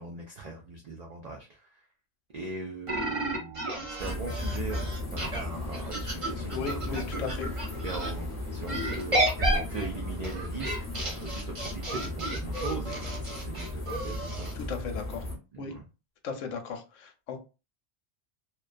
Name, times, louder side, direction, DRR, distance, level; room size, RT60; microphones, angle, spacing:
voice 1, 0.0-1.9 2.3-7.3 7.8-14.5 15.5-15.9, right 3 dB, 80° right, 1 dB, 0.3 m, -40 dB
sound 1, 2.9-8.1 8.7-14.5, right 1 dB, 35° right, 0.6 m, -32 dB
sound 2, 4.0-15.4, left 1 dB, 15° left, 0.6 m, -36 dB
voice 2, 6.5-7.5 14.6-15.2 15.6-15.7 16.2-17.5, left 6 dB, 85° left, 6 dB, 1.0 m, -36 dB
2.3 x 2.2 x 2.4 m, 0.31 s
omnidirectional pair, 1.3 m